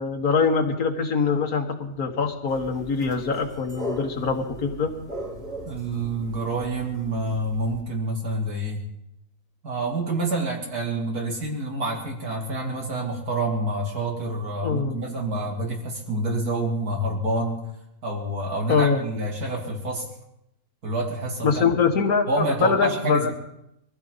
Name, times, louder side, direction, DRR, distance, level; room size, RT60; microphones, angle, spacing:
voice 1, 0.0-4.9 14.6-15.0 18.7-19.0 21.4-23.3, left 5 dB, 75° left, 3 dB, 1.7 m, -23 dB
sound 1, 2.5-7.8, equal, 60° right, 3.4 m, -39 dB
voice 2, 5.6-8.8 9.6-17.6 18.0-20.0 20.8-21.6 22.3-23.3, right 2 dB, 80° right, -1 dB, 3.4 m, -27 dB
22.5 x 15.0 x 4.0 m, 0.82 s
omnidirectional pair, 1.6 m